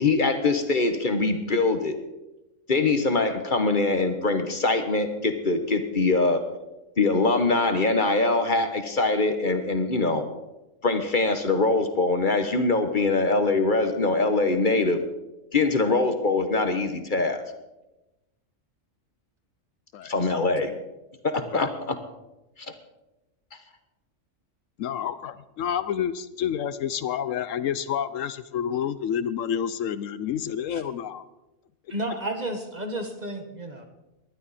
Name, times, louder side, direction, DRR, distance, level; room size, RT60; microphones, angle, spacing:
voice 1, 0.0-2.0 2.7-6.4 7.0-10.2 10.8-15.0 15.5-17.4 20.0-20.7 21.2-22.0, left 3 dB, 40° left, 7 dB, 1.2 m, -23 dB
voice 2, 24.8-31.2, left 9 dB, 75° left, 14 dB, 1.0 m, -29 dB
voice 3, 31.9-33.8, right 1 dB, 35° right, 5 dB, 1.6 m, -32 dB
19.5 x 12.0 x 4.2 m, 0.99 s
omnidirectional pair, 1.4 m